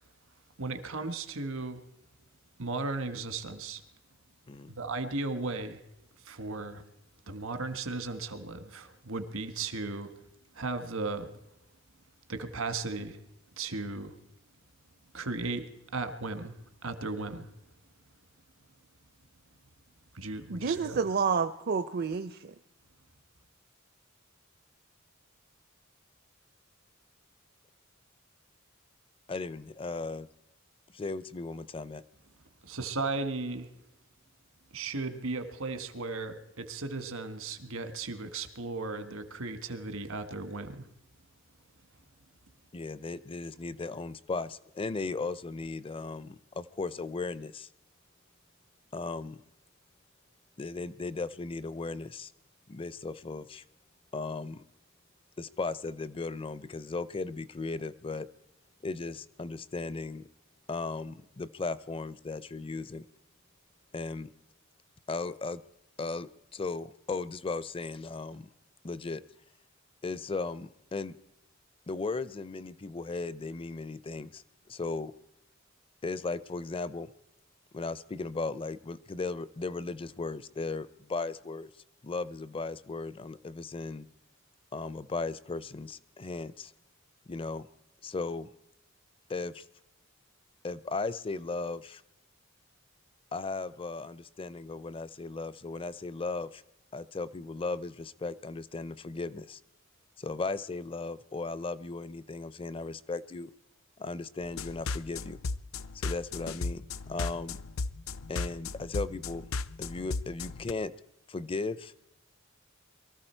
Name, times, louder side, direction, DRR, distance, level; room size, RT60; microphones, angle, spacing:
voice 1, 0.6-1.8 2.6-3.8 4.7-5.8 6.2-6.8 7.3-10.1 10.5-11.3 12.3-13.2 13.6-14.2 15.1-15.6 15.9-17.5 20.1-21.0 32.6-33.7 34.7-40.9, right 3 dB, 80° right, 1.5 m, -36 dB
voice 2, 20.5-22.5, right 5 dB, 50° right, 0.6 m, -29 dB
voice 3, 29.3-30.3 30.9-32.0 42.7-47.7 48.9-49.4 50.6-52.3 52.7-53.6 54.1-54.6 55.4-58.3 58.8-60.3 60.7-63.0 63.9-64.3 65.1-65.6 66.0-68.5 68.8-69.2 70.0-71.1 71.9-75.1 76.0-77.1 77.7-81.7 82.0-84.1 84.7-86.7 87.3-87.7 88.0-88.5 89.3-89.7 90.6-92.0 93.3-96.6 96.9-99.6 100.2-103.5 104.0-105.4 105.9-107.6 108.3-109.5 109.8-110.9 111.3-111.9, left 3 dB, 25° left, 0.5 m, -36 dB
sound 1, 104.6-110.7, left 4 dB, 75° left, 0.6 m, -36 dB
23.5 x 14.0 x 4.5 m
head